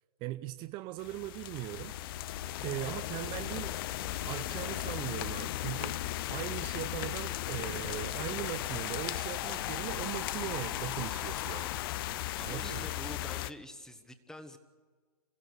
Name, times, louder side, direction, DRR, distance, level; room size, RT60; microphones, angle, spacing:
voice 1, 0.2-1.9 2.6-3.8 4.2-11.7 12.4-12.9, right 16 dB, 25° right, 10 dB, 0.7 m, -39 dB
sound 1, 1.0-13.5, left 15 dB, 35° left, 0.6 m, -37 dB
sound 2, 1.7-12.7, left 9 dB, 55° left, 1.1 m, -45 dB
voice 2, 12.4-14.6, left 1 dB, 5° left, 9 dB, 1.7 m, -46 dB
29.0 x 15.5 x 6.8 m, 1.5 s
hypercardioid pair, 125°, 19 cm